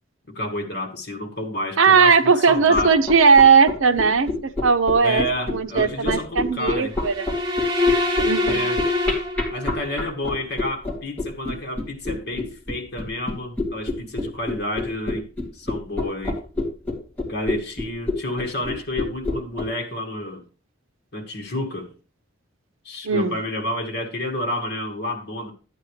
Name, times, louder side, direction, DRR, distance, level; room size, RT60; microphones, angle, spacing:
voice 1, 0.3-3.0 5.0-7.0 8.4-8.8 9.5-15.3 15.5-16.4 17.2-20.4 21.1-21.9 22.8-25.5, left 1 dB, 50° left, 1.9 m, -30 dB
voice 2, 1.8-7.3 8.2-8.6 23.0-23.4, right 5 dB, 75° right, 0.7 m, -18 dB
sound 1, 2.6-19.6, left 2 dB, 10° left, 2.5 m, -27 dB
sound 2, 6.9-10.0, left 2 dB, 25° right, 1.5 m, -24 dB
12.0 x 9.2 x 3.2 m
head